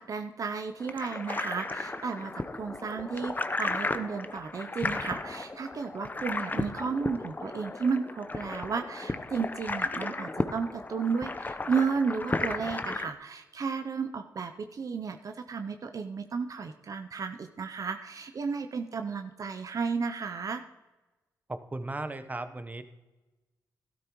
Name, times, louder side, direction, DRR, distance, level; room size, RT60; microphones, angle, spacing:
voice 1, 0.0-20.6, right 5 dB, 55° right, 6 dB, 0.6 m, -33 dB
Underwater (small river), 0.8-13.1, left 2 dB, 25° left, 0.7 m, -34 dB
voice 2, 21.5-22.8, right 2 dB, 25° right, 10 dB, 0.9 m, -36 dB
13.0 x 12.0 x 3.0 m, 1.1 s
cardioid pair, 55°, 7 cm